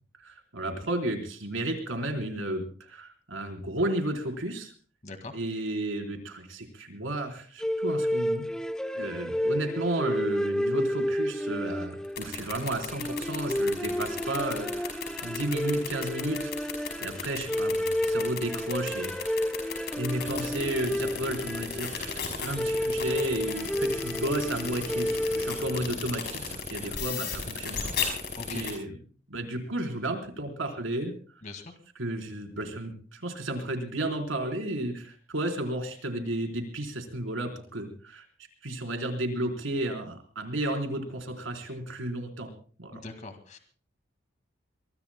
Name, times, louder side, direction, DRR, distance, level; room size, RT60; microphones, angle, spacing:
voice 1, 0.2-4.7 5.3-8.4 8.9-16.7 17.0-19.2 19.4-19.5 20.0-27.9 28.5-29.0 29.3-31.1 32.0-38.2 38.6-42.5 42.8-43.0, right 1 dB, 85° right, 3 dB, 4.0 m, -33 dB
voice 2, 5.0-5.3 28.3-28.6 31.4-31.7 42.9-43.6, left 3 dB, 40° left, 6 dB, 1.9 m, -41 dB
sound 1, 7.6-26.1, equal, 5° left, 0.6 m, -31 dB
sound 2, 12.0-28.7, left 6 dB, 55° left, 5.5 m, -34 dB
24.0 x 22.5 x 2.2 m, 0.43 s
head